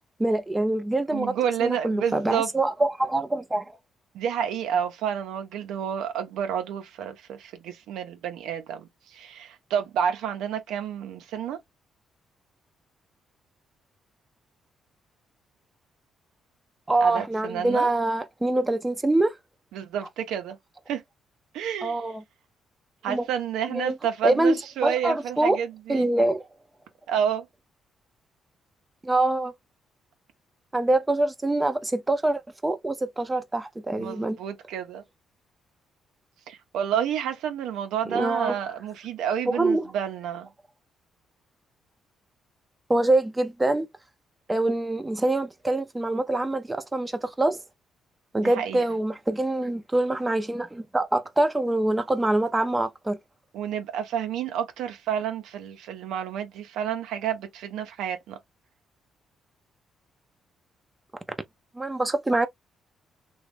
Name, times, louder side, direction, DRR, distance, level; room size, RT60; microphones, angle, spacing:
voice 1, 0.2-1.4 1.6-3.6 16.9-19.3 21.8-22.2 23.1-23.3 23.7-24.0 24.2-24.5 24.8-25.6 25.9-26.4 29.0-29.5 30.7-34.4 38.1-38.6 39.5-39.9 42.9-43.9 44.5-47.6 48.3-53.2 61.7-62.5, right 2 dB, 15° right, 0.6 m, -24 dB
voice 2, 1.1-2.5 4.1-11.6 17.0-17.9 19.7-20.6 20.9-21.0 21.5-22.0 23.0-26.1 27.1-27.5 34.0-35.0 36.5-40.5 48.4-48.8 53.5-58.4, right 8 dB, 85° right, 0.7 m, -29 dB
3.0 x 2.3 x 3.4 m
cardioid pair, 90°, 0 cm